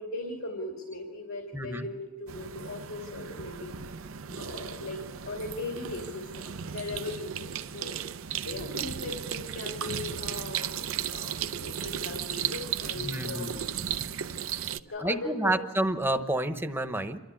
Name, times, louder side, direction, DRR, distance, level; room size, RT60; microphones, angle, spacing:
voice 1, 0.0-3.8 4.3-8.0 8.4-13.6 14.9-15.6, left 2 dB, 85° left, 1 dB, 2.6 m, -39 dB
voice 2, 1.5-1.8 13.0-13.9 15.0-17.2, right 1 dB, 10° right, 7 dB, 0.9 m, -30 dB
sound 1, 2.3-14.8, right 9 dB, 75° right, 0.6 m, -35 dB
28.0 x 13.0 x 8.5 m, 1.3 s
head